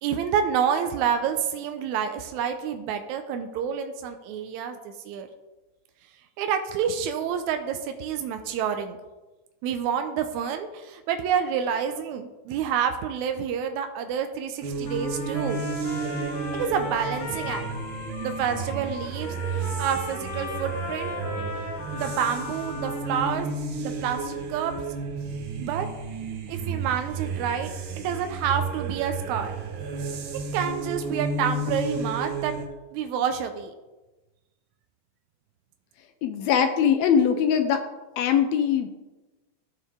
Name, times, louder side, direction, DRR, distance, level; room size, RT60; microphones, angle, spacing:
voice 1, 0.0-5.3 6.4-9.0 9.6-15.6 16.5-17.7 18.2-21.2 21.9-23.5 23.8-24.7 25.6-25.9 26.5-29.5 30.5-32.5 32.9-33.7, right 8 dB, 85° right, 7 dB, 1.9 m, -28 dB
sound 1, 14.6-32.7, right 4 dB, 65° right, 1.2 m, -32 dB
Trumpet, 14.9-23.3, left 3 dB, 60° left, 1.8 m, -37 dB
voice 2, 36.2-37.8 38.2-38.9, left 8 dB, 80° left, 8 dB, 1.7 m, -21 dB
13.5 x 4.5 x 3.6 m, 1.1 s
omnidirectional pair, 3.4 m